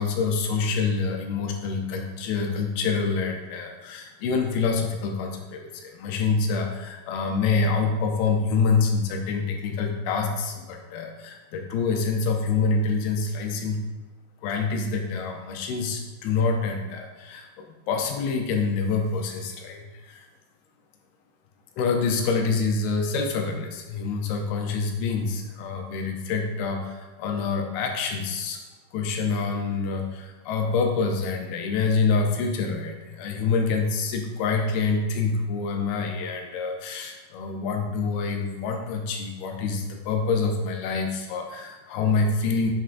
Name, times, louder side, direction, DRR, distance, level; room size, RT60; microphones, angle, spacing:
voice 1, 0.0-13.8 14.4-20.3 21.8-28.6 28.9-42.7, left 4 dB, 85° left, 3 dB, 2.7 m, -26 dB
7.5 x 5.6 x 2.5 m, 1.2 s
omnidirectional pair, 4.3 m